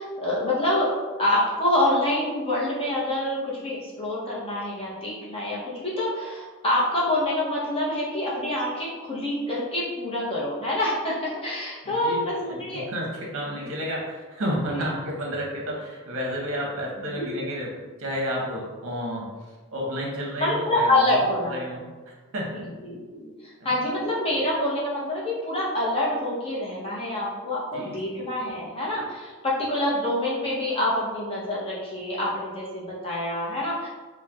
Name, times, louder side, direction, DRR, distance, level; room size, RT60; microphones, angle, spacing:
voice 1, 0.0-12.8 17.2-17.3 20.4-21.5 22.8-33.9, left 1 dB, 25° left, -6 dB, 0.6 m, -26 dB
voice 2, 11.8-22.6 23.6-23.8 27.7-28.0, equal, 60° right, -2 dB, 0.8 m, -31 dB
4.1 x 2.1 x 2.3 m, 1.3 s
head